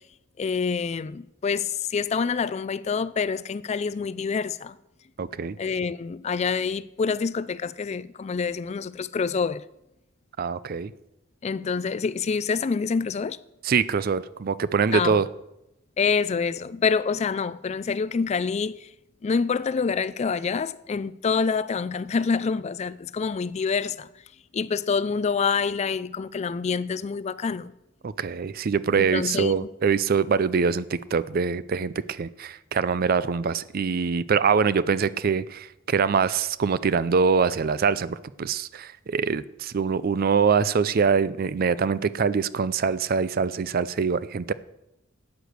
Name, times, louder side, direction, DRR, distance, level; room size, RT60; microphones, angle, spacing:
voice 1, 0.4-4.8 5.6-9.6 11.4-13.4 14.9-15.2 16.0-18.9 19.2-24.1 24.5-27.7 28.9-29.6, left 5 dB, 35° left, 0.3 m, -26 dB
voice 2, 5.2-5.6 10.4-10.9 13.6-15.3 28.0-44.5, right 5 dB, 45° right, 0.4 m, -24 dB
11.5 x 8.0 x 6.6 m
head